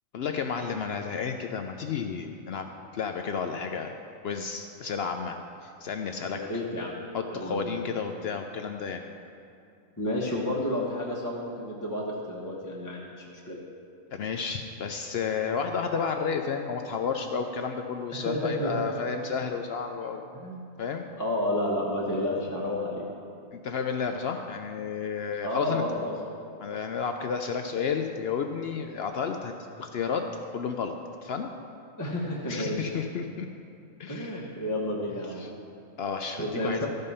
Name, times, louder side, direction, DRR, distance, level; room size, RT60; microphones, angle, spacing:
voice 1, 0.1-2.7 2.9-3.9 4.2-6.4 7.1-9.0 14.1-20.2 20.8-21.1 23.5-25.8 26.6-30.2 30.5-30.9 31.2-31.5 32.5-33.5 34.0-34.4 35.4-35.5 36.0-36.8, left 6 dB, 65° left, 5 dB, 0.6 m, -31 dB
voice 2, 6.3-7.0 7.3-7.8 10.0-13.6 18.1-18.8 20.3-20.6 21.2-23.1 25.4-26.2 32.0-32.9 34.1-35.4 36.4-36.9, left 1 dB, 15° left, -4 dB, 0.9 m, -31 dB
13.0 x 5.3 x 5.5 m, 2.6 s
omnidirectional pair, 1.4 m